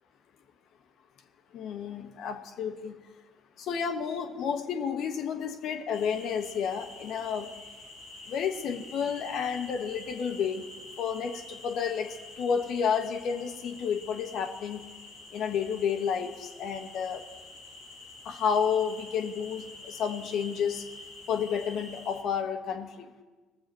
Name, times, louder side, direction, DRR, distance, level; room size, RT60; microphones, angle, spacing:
voice 1, 1.5-3.0 3.6-7.5 8.3-10.7 11.0-14.8 15.3-17.2 18.2-20.8 21.3-23.1, left 7 dB, 60° left, 5 dB, 1.2 m, -31 dB
sound 1, 5.9-22.2, left 2 dB, 90° left, 3.6 m, -47 dB
20.5 x 7.1 x 4.4 m, 1.3 s
hypercardioid pair, 50°, 0 cm